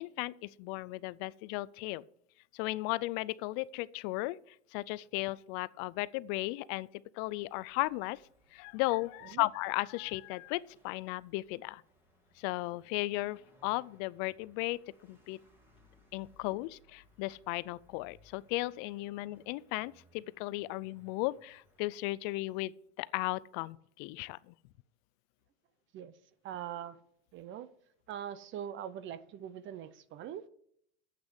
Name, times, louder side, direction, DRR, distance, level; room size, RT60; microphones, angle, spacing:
voice 1, 0.0-2.0 2.5-8.2 8.5-11.8 12.4-15.4 16.1-24.5, left 20 dB, 50° left, 0.5 m, -36 dB
sound 1, 7.3-21.9, left 1 dB, 5° right, 2.4 m, -67 dB
voice 2, 26.4-27.0 27.3-27.7 28.1-30.5, right 9 dB, 35° right, 0.6 m, -42 dB
8.3 x 6.2 x 7.3 m
supercardioid pair, 130°, 35 cm